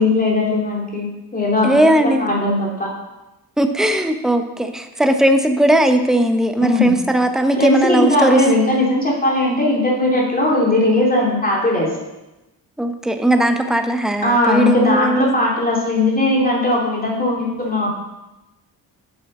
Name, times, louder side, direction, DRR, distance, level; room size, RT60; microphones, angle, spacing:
voice 1, 0.0-2.9 6.6-6.9 7.5-11.9 14.2-17.9, left 2 dB, 20° left, -3 dB, 2.7 m, -18 dB
voice 2, 1.6-2.3 3.6-8.4 12.8-15.3, right 1 dB, ahead, 7 dB, 0.8 m, -17 dB
7.9 x 5.6 x 5.4 m, 1.0 s
cardioid pair, 70°, 41 cm